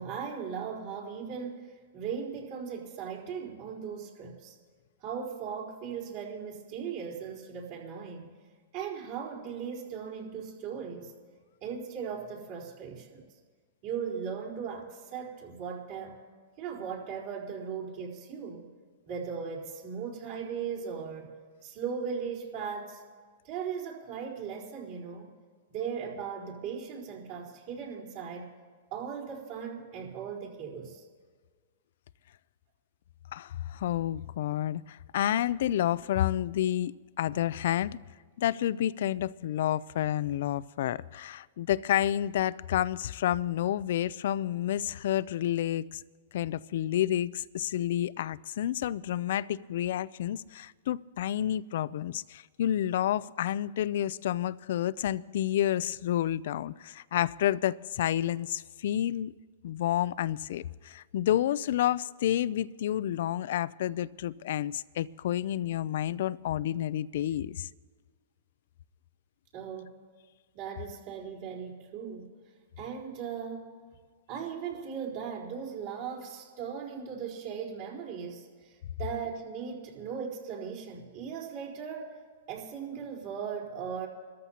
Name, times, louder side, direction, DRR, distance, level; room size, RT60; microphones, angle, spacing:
voice 1, 0.0-4.5 5.0-8.3 8.7-11.1 11.6-13.2 13.8-16.2 16.6-18.7 19.1-21.3 21.6-23.0 23.4-25.3 25.7-28.5 28.9-31.0 69.5-70.0 70.5-72.3 72.8-73.7 74.3-82.1 82.5-84.1, right 7 dB, 50° right, 4.2 m, -38 dB
voice 2, 33.3-38.0 38.4-46.0 46.3-59.3 59.6-67.7, left 12 dB, 65° left, 0.4 m, -30 dB
26.5 x 13.5 x 2.9 m
hypercardioid pair, 135°, 0 cm